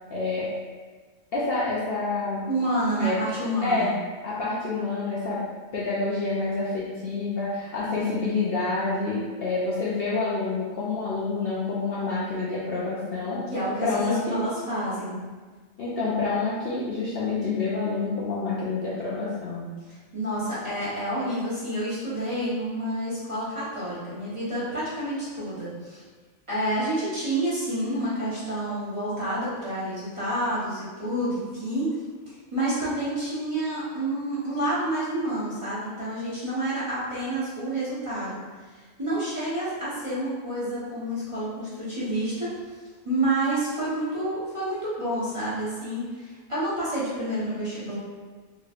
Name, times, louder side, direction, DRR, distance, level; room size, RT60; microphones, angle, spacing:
voice 1, 0.1-0.5 1.3-2.5 3.0-3.2 3.6-3.9 4.2-5.4 5.7-13.4 13.8-14.4 15.8-19.6, left 3 dB, 55° left, -8 dB, 0.7 m, -28 dB
voice 2, 2.5-3.9 13.5-15.2 19.9-26.0 26.5-31.9 32.3-38.4 39.0-42.5 43.0-48.0, right 1 dB, 25° right, -11 dB, 1.0 m, -29 dB
3.6 x 3.1 x 2.4 m, 1.4 s
omnidirectional pair, 1.4 m